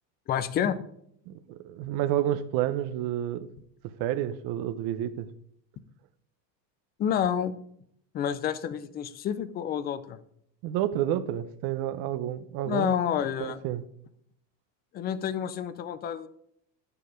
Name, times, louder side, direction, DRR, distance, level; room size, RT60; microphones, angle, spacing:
voice 1, 0.3-0.8 7.0-7.5 8.1-10.2 12.7-13.6 14.9-16.3, left 9 dB, 20° left, 13 dB, 0.4 m, -29 dB
voice 2, 1.3-3.5 4.0-5.3 10.6-12.9 13.4-13.9, right 12 dB, 45° right, 11 dB, 0.8 m, -30 dB
11.0 x 6.9 x 5.0 m, 0.70 s
supercardioid pair, 140°, 50 cm